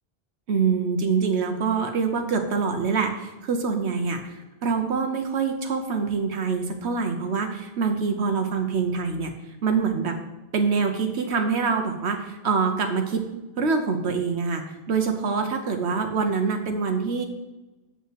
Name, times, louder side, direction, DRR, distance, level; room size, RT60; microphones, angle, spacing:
voice 1, 0.5-4.2 4.6-9.3 9.6-10.2 10.5-13.3 13.6-17.2, right 5 dB, 80° right, 5 dB, 1.1 m, -25 dB
7.6 x 5.5 x 7.6 m, 1.1 s
omnidirectional pair, 1.1 m